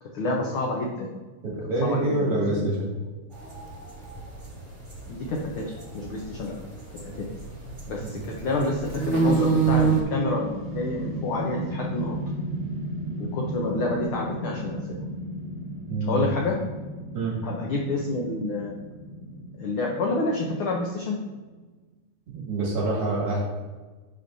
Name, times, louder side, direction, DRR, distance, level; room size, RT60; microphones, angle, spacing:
voice 1, 0.0-1.2 1.8-2.8 5.1-6.5 7.0-7.3 7.9-12.2 13.2-15.0 16.0-16.6 17.4-18.8 19.6-21.2, left 2 dB, 75° left, -1 dB, 1.2 m, -29 dB
voice 2, 1.5-2.9 8.0-8.3 15.9-16.2 17.1-17.4 22.3-23.4, right 2 dB, 50° right, -4 dB, 2.7 m, -26 dB
sound 1, 3.3-10.0, right 5 dB, 35° right, 0.7 m, -27 dB
sound 2, 9.3-21.5, right 1 dB, 90° right, 1.0 m, -35 dB
11.5 x 5.0 x 2.7 m, 1.3 s
omnidirectional pair, 3.4 m